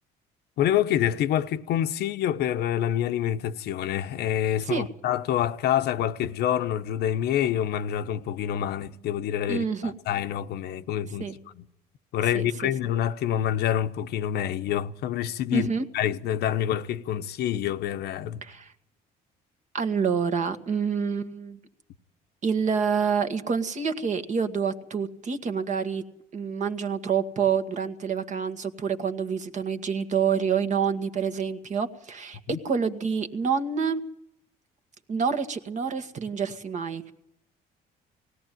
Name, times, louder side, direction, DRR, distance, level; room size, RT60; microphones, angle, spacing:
voice 1, 0.6-11.6 12.1-15.7 15.9-18.4, left 11 dB, 75° left, 0.9 m, -27 dB
voice 2, 9.5-9.9 11.2-11.3 12.3-12.7 15.5-15.9 18.4-18.7 19.7-21.6 22.4-26.0 26.3-34.0 35.1-37.1, right 6 dB, 45° right, 1.8 m, -27 dB
19.0 x 16.5 x 9.2 m
cardioid pair, 110°, 17 cm